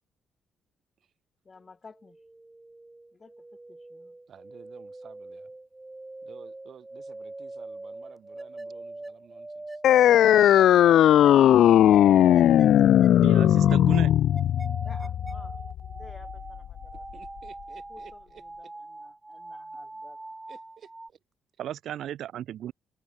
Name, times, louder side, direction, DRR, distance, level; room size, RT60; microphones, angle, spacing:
voice 1, 1.4-2.2 3.1-4.2 14.8-15.6 15.9-17.0 17.9-20.3, left 4 dB, 30° left, 7.4 m, -53 dB
sound 1, 1.9-21.1, right 2 dB, 15° right, 3.4 m, -42 dB
voice 2, 4.3-5.5 6.2-9.8 17.1-18.7 20.5-21.2, right 8 dB, 55° right, 4.7 m, -53 dB
sound 2, 9.8-16.8, left 11 dB, 75° left, 0.4 m, -18 dB
voice 3, 13.2-14.1 21.6-22.7, right 11 dB, 75° right, 1.9 m, -35 dB
cardioid pair, 90°, 0 cm